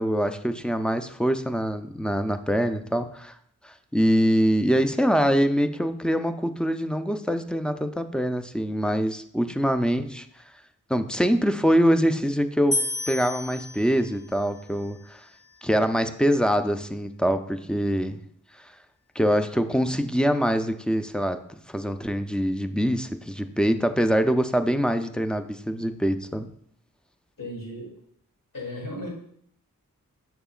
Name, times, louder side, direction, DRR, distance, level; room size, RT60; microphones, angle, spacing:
voice 1, 0.0-3.3 3.6-10.3 10.9-15.2 15.6-18.2 19.2-21.4 21.7-26.5, equal, 5° left, 8 dB, 0.5 m, -24 dB
sound 1, 12.7-15.9, left 2 dB, 45° left, 0.7 m, -33 dB
voice 2, 27.4-27.9 28.5-29.1, left 1 dB, 70° left, -3 dB, 2.7 m, -35 dB
6.7 x 5.8 x 2.4 m, 0.67 s
cardioid pair, 45°, 35 cm